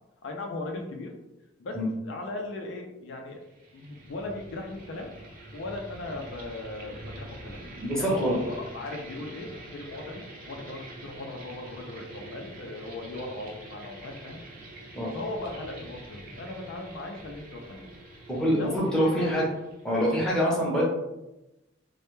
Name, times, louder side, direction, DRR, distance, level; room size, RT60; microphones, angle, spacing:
voice 1, 0.2-1.1 1.6-1.8 2.0-3.4 3.7-5.1 5.5-7.6 8.0-14.4 15.1-17.9 18.5-19.5, left 2 dB, 70° left, 2 dB, 0.4 m, -38 dB
sound 1, 3.4-20.1, right 1 dB, 45° right, 0.5 m, -46 dB
voice 2, 7.8-8.4 14.9-15.1 18.3-19.4 19.8-20.8, equal, 5° left, -6 dB, 0.6 m, -25 dB
2.1 x 2.1 x 3.0 m, 0.95 s
head